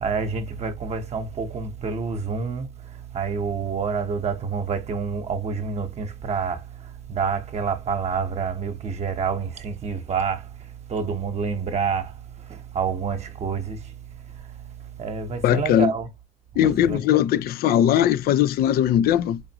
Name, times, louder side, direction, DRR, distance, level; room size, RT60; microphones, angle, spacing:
voice 1, 0.0-2.7 3.1-6.6 7.1-10.4 10.9-12.1 12.7-13.8 15.0-16.1 16.6-17.0, right 5 dB, 40° right, 0.9 m, -27 dB
voice 2, 15.4-15.9 16.6-19.4, left 11 dB, 65° left, 0.4 m, -20 dB
4.9 x 2.5 x 2.9 m
cardioid pair, 110°, 17 cm